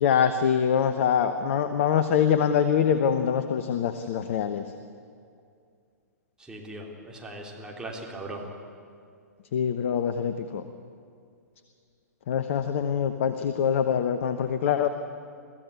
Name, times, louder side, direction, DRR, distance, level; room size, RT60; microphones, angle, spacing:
voice 1, 0.0-4.6 9.5-10.6 12.3-14.9, left 8 dB, 50° left, 9 dB, 1.1 m, -24 dB
voice 2, 6.4-8.4, right 2 dB, 10° right, -1 dB, 3.2 m, -39 dB
22.5 x 15.5 x 8.3 m, 2.3 s
figure-of-eight pair, 115°, 9 cm